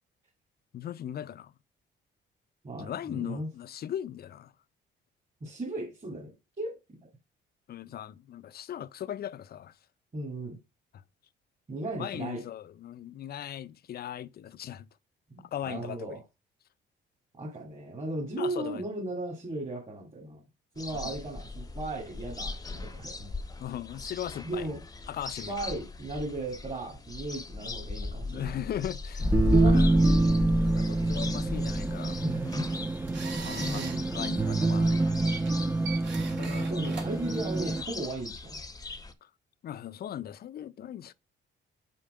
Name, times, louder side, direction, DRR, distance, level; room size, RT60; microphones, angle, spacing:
voice 1, 0.7-1.5 2.8-4.5 7.7-9.7 12.0-14.9 15.5-16.2 18.4-18.8 20.9-21.1 23.6-24.7 25.1-25.5 27.6-27.7 28.2-30.0 30.6-32.2 33.5-33.9 34.1-35.1 36.4-36.8 39.2-39.3 39.6-41.1, left 10 dB, 50° left, 0.5 m, -38 dB
voice 2, 2.6-3.5 5.4-6.7 10.1-10.6 11.7-12.4 15.3-16.2 17.4-20.4 20.8-23.3 24.4-24.8 25.5-28.6 29.5-29.8 32.2-32.7 33.6-34.1 36.7-38.6, right 2 dB, 30° right, 2.3 m, -36 dB
sound 1, 20.8-39.1, left 3 dB, 20° left, 0.8 m, -35 dB
sound 2, 29.2-37.8, right 2 dB, 10° right, 0.3 m, -27 dB
sound 3, 32.3-37.9, right 5 dB, 65° right, 3.3 m, -43 dB
5.7 x 4.5 x 4.9 m
cardioid pair, 90°, 20 cm